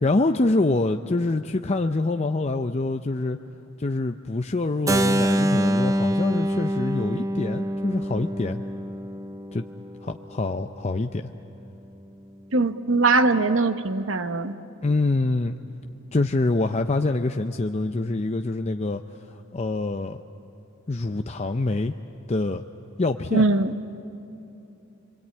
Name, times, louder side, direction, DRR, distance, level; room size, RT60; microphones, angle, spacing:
voice 1, 0.0-3.4 3.8-8.6 9.5-9.6 10.0-11.3 14.8-15.6 16.1-20.2 20.9-21.9 22.3-22.6 23.0-23.4, left 2 dB, 30° left, 6 dB, 0.5 m, -25 dB
Keyboard (musical), 4.9-10.7, equal, 15° right, 0.5 m, -26 dB
voice 2, 12.5-14.5 23.3-23.7, right 3 dB, 60° right, 9 dB, 1.1 m, -21 dB
29.5 x 23.0 x 8.8 m, 2.8 s
head